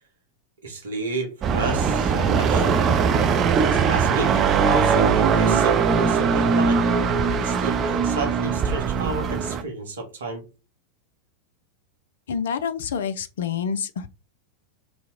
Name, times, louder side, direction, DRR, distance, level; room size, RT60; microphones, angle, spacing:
voice 1, 0.6-2.8 3.7-6.8 7.4-10.4, right 3 dB, 65° right, 0.8 m, -31 dB
sound 1, 1.4-9.6, right 6 dB, 30° right, 0.4 m, -20 dB
voice 2, 12.3-14.1, left 7 dB, 60° left, 0.3 m, -27 dB
2.8 x 2.1 x 3.6 m
figure-of-eight pair, 90°, 0 cm